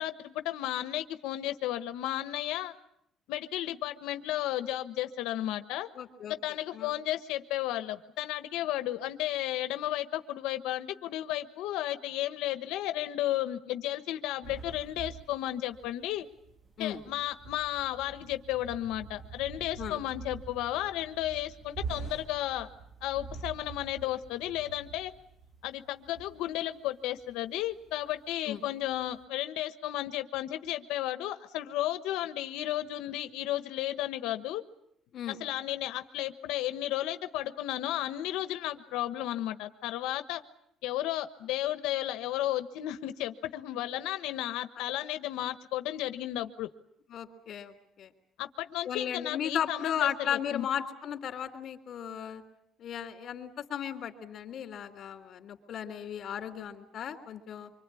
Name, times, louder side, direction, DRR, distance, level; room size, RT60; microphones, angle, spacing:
voice 1, 0.0-2.7 3.3-5.9 6.3-16.3 16.8-22.7 23.0-25.1 25.6-34.6 35.3-40.4 40.8-46.7 48.4-50.7, left 14 dB, 90° left, 9 dB, 1.2 m, -33 dB
voice 2, 6.0-6.3 6.7-6.9 16.8-17.0 19.8-20.0 28.5-28.6 35.1-35.4 47.1-48.1 48.9-52.4 52.8-57.7, left 9 dB, 50° left, 6 dB, 3.4 m, -35 dB
sound 1, 14.4-26.9 27.2-27.3 27.7-28.5 28.9-29.2, right 5 dB, 30° right, 1.8 m, -46 dB
25.5 x 24.5 x 8.4 m, 0.74 s
cardioid pair, 135°, 0 cm